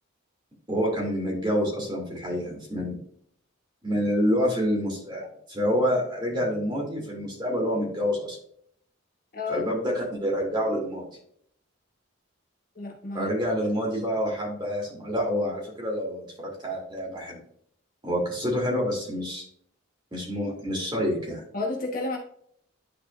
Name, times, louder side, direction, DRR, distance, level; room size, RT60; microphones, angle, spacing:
voice 1, 0.7-3.0 3.8-8.4 9.5-11.1 13.1-17.4 18.0-19.4 20.1-21.4, equal, 20° right, -3 dB, 2.6 m, -27 dB
voice 2, 9.3-9.6 12.7-13.3 21.5-22.2, left 3 dB, 40° left, -1 dB, 1.2 m, -31 dB
10.5 x 4.3 x 2.5 m, 0.66 s
head